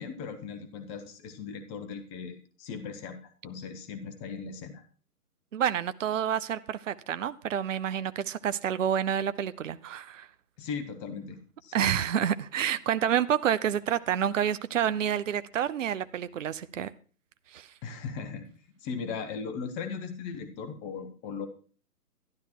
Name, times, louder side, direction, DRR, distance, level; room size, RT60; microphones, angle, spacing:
voice 1, 0.0-3.2 3.4-4.8 10.6-12.0 17.8-18.5 18.8-21.5, left 5 dB, 15° left, 1.1 m, -38 dB
voice 2, 5.5-10.3 11.7-16.9 17.5-17.7, right 9 dB, 55° right, 0.8 m, -28 dB
12.5 x 11.5 x 4.5 m
hypercardioid pair, 145°, 47 cm